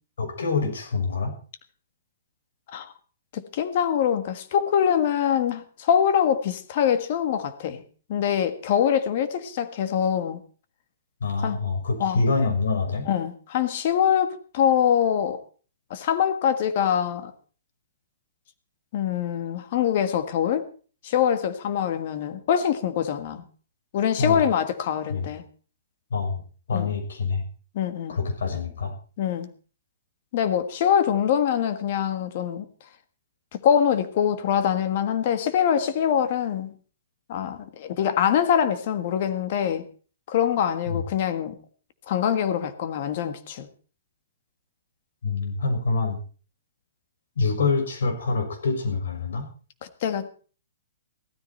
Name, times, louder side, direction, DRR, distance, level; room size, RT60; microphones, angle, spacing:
voice 1, 0.2-1.4 11.2-13.1 24.2-24.4 25.1-25.3 26.1-26.4 26.7-27.4 28.1-28.9 40.9-41.0 45.2-46.2 47.4-49.5, left 4 dB, 90° left, 3 dB, 6.3 m, -26 dB
voice 2, 3.3-7.8 8.1-10.4 11.4-11.6 12.0-12.2 13.0-15.4 15.9-17.3 18.9-20.6 21.0-23.4 23.9-25.4 26.7-26.9 27.7-28.2 29.2-29.5 30.3-32.7 33.5-36.7 37.3-39.8 40.3-41.6 42.1-43.7 50.0-50.3, left 8 dB, 35° left, 11 dB, 1.5 m, -24 dB
15.5 x 13.5 x 4.4 m, 0.39 s
hypercardioid pair, 175°, 0 cm